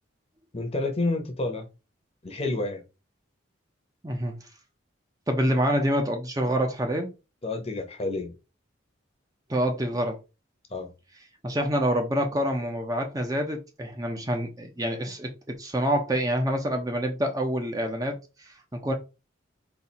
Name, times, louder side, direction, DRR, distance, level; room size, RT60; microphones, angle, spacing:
voice 1, 0.5-1.7 2.2-2.8 7.4-8.3 10.7-10.9, left 2 dB, 30° left, 0.8 m, -29 dB
voice 2, 4.0-4.4 5.3-7.1 9.5-10.2 11.4-18.9, equal, 20° right, 0.7 m, -27 dB
4.1 x 2.6 x 4.1 m
head